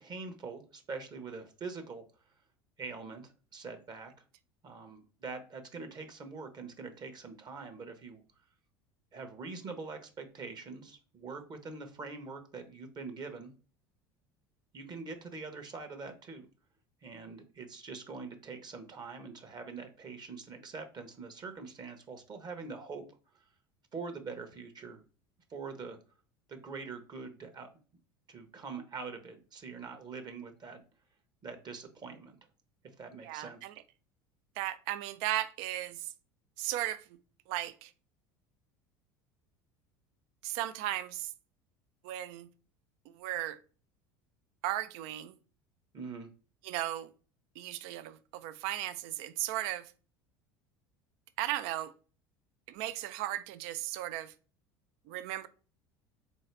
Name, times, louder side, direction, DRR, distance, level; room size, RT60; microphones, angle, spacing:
voice 1, 0.0-2.0 2.8-4.1 4.6-8.2 9.1-13.5 14.7-16.5 17.0-23.0 23.9-25.0 25.5-26.0 26.5-27.7 28.3-30.8 31.4-32.4 33.0-33.6 45.9-46.3, right 4 dB, 35° right, 0.9 m, -44 dB
voice 2, 33.2-33.7 34.6-36.1 36.6-37.0 37.5-37.9 40.4-41.3 42.0-42.5 43.1-43.6 44.6-45.4 46.6-47.1 47.6-49.9 51.4-51.9 52.7-54.3 55.1-55.5, right 14 dB, 65° right, 0.4 m, -36 dB
3.8 x 2.7 x 3.3 m
hypercardioid pair, 80°, 12 cm